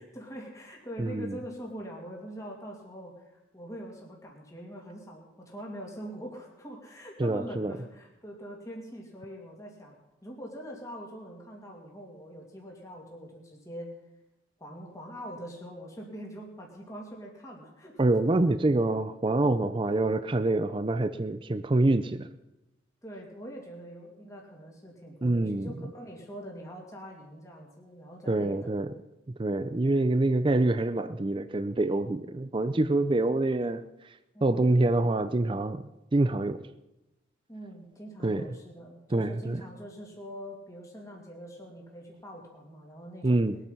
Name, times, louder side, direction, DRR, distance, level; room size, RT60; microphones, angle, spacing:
voice 1, 0.0-14.0 14.6-18.5 23.0-28.8 29.8-30.1 34.3-34.7 37.5-43.4, equal, 15° left, -1 dB, 2.5 m, -43 dB
voice 2, 1.0-1.4 7.2-7.7 18.0-22.3 25.2-25.7 28.3-28.9 29.4-34.1 34.4-36.7 38.2-38.5 39.1-39.6 43.2-43.6, right 2 dB, 25° right, 11 dB, 0.5 m, -26 dB
21.0 x 9.0 x 5.7 m, 0.97 s
head